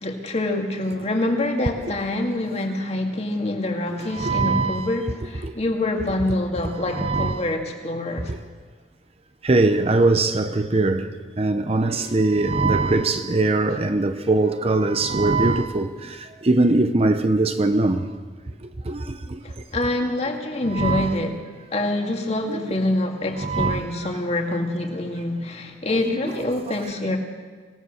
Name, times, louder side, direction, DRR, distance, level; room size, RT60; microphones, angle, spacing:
voice 1, 0.0-8.3 19.4-21.4 21.7-27.2, left 1 dB, 40° left, 2.2 m, -26 dB
voice 2, 4.0-5.0 5.4-5.5 6.6-7.5 8.3-8.4 9.4-18.1 18.6-19.4 20.7-21.2 22.5-22.6 23.4-23.9 25.9-26.3, right 2 dB, 35° right, 0.7 m, -22 dB
25.5 x 17.5 x 6.5 m
head